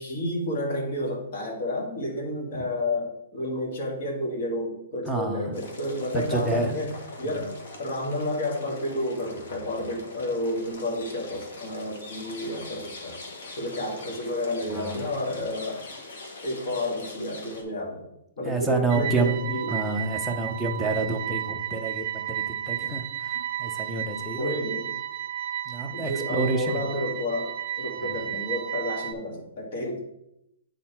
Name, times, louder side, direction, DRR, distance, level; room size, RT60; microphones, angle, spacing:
voice 1, 0.0-6.9 7.2-13.2 13.6-15.8 16.4-18.1 18.4-19.7 24.4-24.9 25.9-27.5 27.8-30.0, left 1 dB, 50° left, 0 dB, 2.0 m, -30 dB
voice 2, 5.0-5.6 6.1-6.8 7.2-7.5 14.7-15.0 18.4-24.5 25.7-26.8 28.0-28.1, right 3 dB, ahead, -1 dB, 0.8 m, -29 dB
sound 1, 5.5-17.6, left 2 dB, 65° left, 1.7 m, -43 dB
sound 2, 18.9-29.1, right 11 dB, 60° right, 0.6 m, -33 dB
8.5 x 4.1 x 4.4 m, 0.82 s
hypercardioid pair, 160°, 0 cm